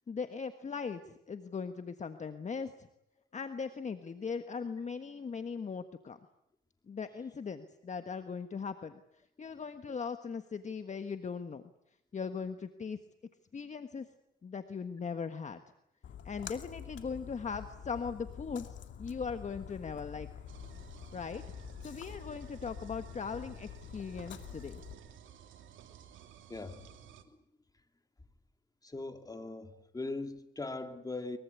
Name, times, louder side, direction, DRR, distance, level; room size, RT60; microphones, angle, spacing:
voice 1, 0.1-2.7 3.3-6.2 6.9-9.0 9.4-11.6 12.1-13.0 13.5-14.1 14.4-15.6 16.2-18.7 19.0-20.3 21.1-21.4 21.8-24.8, left 5 dB, 35° left, 1.5 m, -39 dB
Splash splatter, 16.0-24.9, left 8 dB, 70° left, 2.6 m, -47 dB
sound 1, 20.5-27.2, right 9 dB, 75° right, 2.9 m, -54 dB
voice 2, 26.5-26.8 28.9-31.4, left 2 dB, 20° left, 2.8 m, -40 dB
23.0 x 23.0 x 8.4 m
cardioid pair, 90°, 20 cm